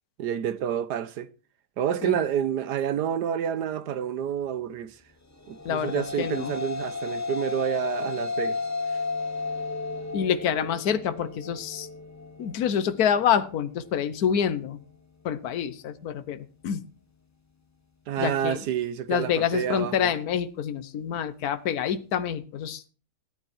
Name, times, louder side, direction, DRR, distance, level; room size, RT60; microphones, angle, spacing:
voice 1, 0.2-1.3 1.8-5.0 5.5-8.6 18.1-20.1, right 9 dB, 80° right, 1.4 m, -29 dB
sound 1, 5.4-13.9, left 4 dB, 10° left, 0.9 m, -34 dB
voice 2, 5.6-6.5 10.1-11.9 12.4-14.8 15.2-16.8 18.2-18.6 19.1-22.9, left 8 dB, 65° left, 1.4 m, -27 dB
17.0 x 9.6 x 4.5 m
omnidirectional pair, 1.8 m